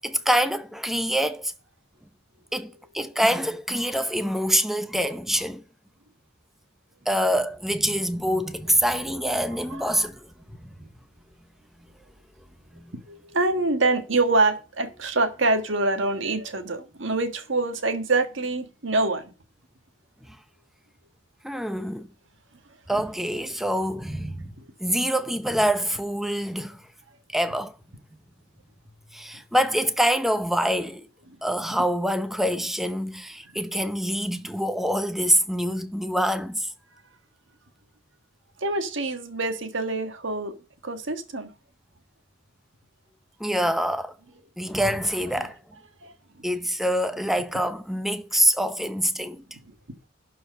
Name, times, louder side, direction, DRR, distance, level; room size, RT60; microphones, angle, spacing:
voice 1, 0.0-1.5 2.5-5.6 7.1-10.3 10.8-10.9 12.7-12.9 21.4-22.1 22.9-24.5 24.8-26.8 27.3-27.8 29.1-31.1 31.4-36.7 43.4-44.2 44.6-45.6 46.4-49.4, equal, ahead, 0.8 m, -25 dB
voice 2, 9.2-10.1 12.9-19.3 38.6-40.5 40.8-41.5 45.3-45.5 46.0-46.1, right 2 dB, 65° right, 1.6 m, -26 dB
12.0 x 4.7 x 6.5 m
head